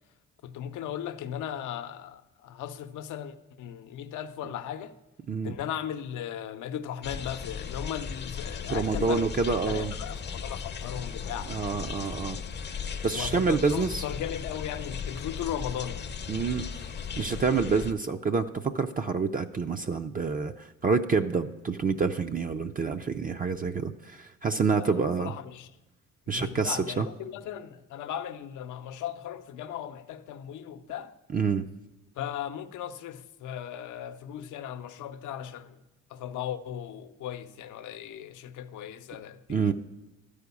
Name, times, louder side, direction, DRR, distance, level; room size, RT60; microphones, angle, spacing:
voice 1, 0.4-4.9 5.4-9.3 9.7-11.5 13.1-16.1 24.7-25.7 26.3-31.1 32.2-35.8 36.1-39.7, left 10 dB, 80° left, 0.7 m, -37 dB
sound 1, 7.0-17.9, left 6 dB, 35° left, 0.6 m, -37 dB
voice 2, 8.7-9.9 11.5-12.4 13.0-14.0 16.3-16.9 17.2-25.3 26.3-27.1 31.3-31.7 39.5-39.7, right 5 dB, 30° right, 0.4 m, -27 dB
12.5 x 5.0 x 8.2 m
cardioid pair, 90°, 30 cm